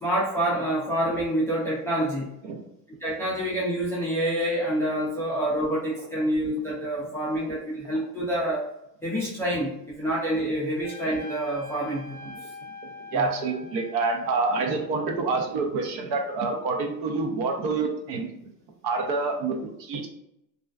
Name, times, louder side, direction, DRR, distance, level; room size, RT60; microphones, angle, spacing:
voice 1, 0.0-2.3 3.0-8.6 9.0-12.3 13.1-13.3, right 1 dB, 5° left, -8 dB, 0.3 m, -27 dB
Trumpet, 10.8-15.5, left 2 dB, 45° left, 0.8 m, -44 dB
voice 2, 13.1-18.5 18.8-20.1, right 3 dB, 55° right, 3 dB, 0.6 m, -27 dB
2.4 x 2.2 x 2.3 m, 0.80 s
supercardioid pair, 120°, 48 cm